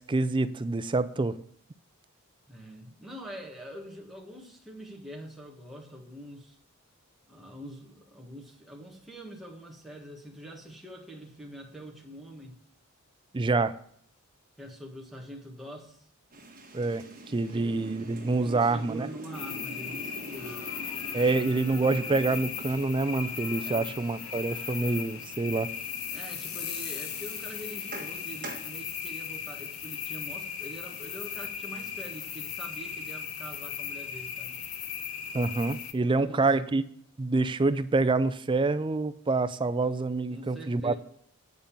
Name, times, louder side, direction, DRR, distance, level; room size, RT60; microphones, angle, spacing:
voice 1, 0.0-1.4 13.3-13.7 16.7-19.1 21.1-25.7 35.3-36.8 37.2-41.0, right 3 dB, 20° right, 13 dB, 0.4 m, -27 dB
voice 2, 2.5-6.6 7.3-12.5 14.6-16.0 17.5-17.8 18.4-20.6 23.6-23.9 26.1-34.6 36.0-36.7 40.3-41.0, equal, ahead, -2 dB, 1.6 m, -44 dB
sound 1, 16.3-28.7, right 1 dB, 40° right, 1.8 m, -45 dB
sound 2, 19.3-35.9, left 7 dB, 70° left, 0.9 m, -37 dB
9.6 x 5.2 x 7.1 m, 0.65 s
head